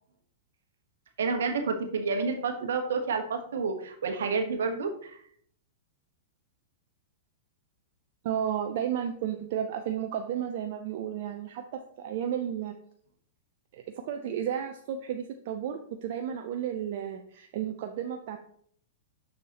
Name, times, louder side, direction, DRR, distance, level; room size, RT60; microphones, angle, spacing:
voice 1, 1.2-5.2, right 4 dB, 75° right, 5 dB, 1.3 m, -29 dB
voice 2, 8.2-12.8 13.7-18.4, right 9 dB, 60° right, 5 dB, 0.6 m, -33 dB
6.6 x 6.5 x 3.0 m, 0.62 s
hypercardioid pair, 110°, 0 cm